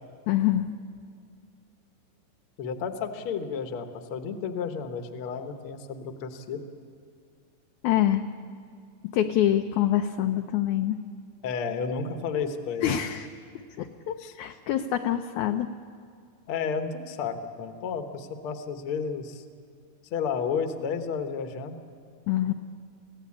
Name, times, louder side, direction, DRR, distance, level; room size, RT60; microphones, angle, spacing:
voice 1, 0.3-0.7 7.8-8.3 9.0-11.0 12.8-13.3 13.8-15.7 22.3-22.5, left 11 dB, 75° left, 6 dB, 1.8 m, -25 dB
voice 2, 2.6-6.6 11.4-13.2 14.2-14.3 16.5-19.4 20.1-21.8, left 6 dB, 55° left, 7 dB, 1.6 m, -32 dB
24.5 x 16.5 x 8.6 m, 2.3 s
omnidirectional pair, 4.0 m